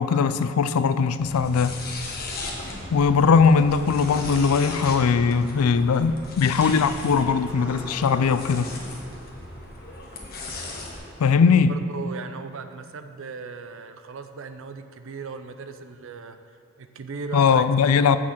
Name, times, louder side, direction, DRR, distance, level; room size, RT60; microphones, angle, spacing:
voice 1, 0.0-1.8 2.9-8.7 11.2-11.7 17.3-18.2, left 5 dB, 90° left, 13 dB, 0.4 m, -20 dB
sound 1, 1.2-11.0, left 2 dB, 45° left, 1.2 m, -37 dB
sound 2, 2.0-11.2, right 1 dB, 10° right, 0.9 m, -43 dB
voice 2, 11.7-16.4 16.8-17.6, right 4 dB, 65° right, 9 dB, 0.5 m, -37 dB
6.3 x 6.1 x 7.3 m, 2.3 s
head